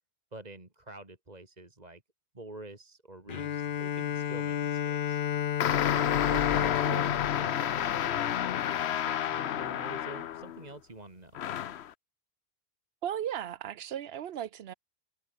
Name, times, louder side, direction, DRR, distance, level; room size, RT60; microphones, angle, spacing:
voice 1, 0.3-2.0 2.3-5.2 7.3-11.4, right 2 dB, 40° right, 3.0 m, -47 dB
Bowed string instrument, 3.3-8.8, left 9 dB, 60° left, 0.8 m, -32 dB
sound 1, 5.6-10.6 11.3-11.9, left 10 dB, 85° left, 1.0 m, -30 dB
voice 2, 6.2-7.1 13.0-14.7, right 10 dB, 75° right, 0.9 m, -37 dB
omnidirectional pair, 1.1 m